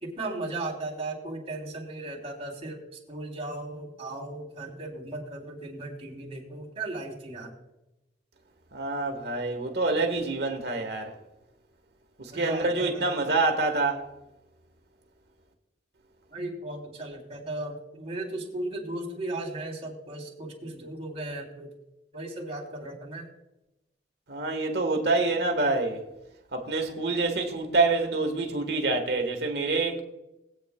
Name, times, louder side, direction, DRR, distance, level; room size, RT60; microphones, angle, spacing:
voice 1, 0.0-2.8 3.1-7.5 12.3-13.1 16.3-21.7 22.1-23.3, right 2 dB, 35° right, 3.2 m, -36 dB
voice 2, 8.7-11.1 12.2-14.0 24.3-26.0 26.5-30.0, right 3 dB, 70° right, 1.5 m, -26 dB
20.5 x 8.5 x 2.3 m
head